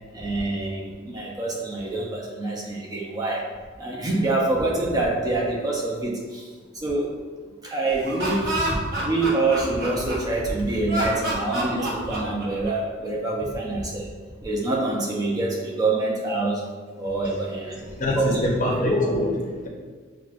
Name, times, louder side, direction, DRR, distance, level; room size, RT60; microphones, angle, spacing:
voice 1, 0.1-3.5 3.8-6.5 6.7-7.2 7.6-14.1 14.4-16.6 17.0-18.5, right 2 dB, 20° right, -3 dB, 0.5 m, -26 dB
Laughter, 7.9-10.4 10.9-12.9, right 1 dB, 55° right, 0.9 m, -28 dB
voice 2, 17.9-19.7, left 1 dB, 40° left, -1 dB, 0.6 m, -24 dB
5.9 x 2.1 x 2.4 m, 1.5 s
head